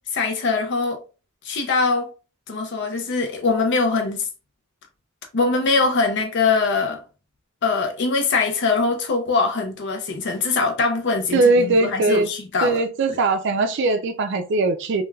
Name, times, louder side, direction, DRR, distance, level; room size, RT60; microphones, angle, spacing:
voice 1, 0.1-1.0 1.4-2.1 2.5-4.3 5.3-7.0 7.6-12.8 13.1-13.2, left 4 dB, 55° left, 0.5 m, -22 dB
voice 2, 11.3-12.3 12.6-15.0, right 3 dB, 60° right, 0.4 m, -20 dB
3.2 x 2.2 x 2.3 m
head